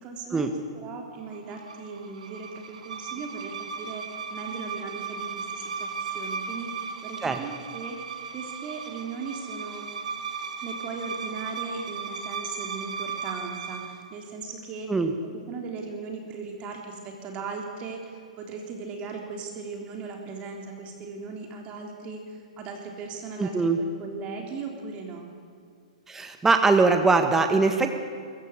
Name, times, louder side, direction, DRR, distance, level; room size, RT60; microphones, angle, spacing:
voice 1, 0.0-6.7 7.0-8.0 8.3-9.9 10.6-14.9 15.2-25.3, right 4 dB, 30° right, 2 dB, 3.6 m, -38 dB
sound 1, 1.3-14.0, right 5 dB, 70° right, 1.8 m, -36 dB
voice 2, 23.4-23.8 26.1-27.9, right 4 dB, 10° right, 6 dB, 1.5 m, -22 dB
22.5 x 15.0 x 8.3 m, 2.2 s
hypercardioid pair, 120°, 4 cm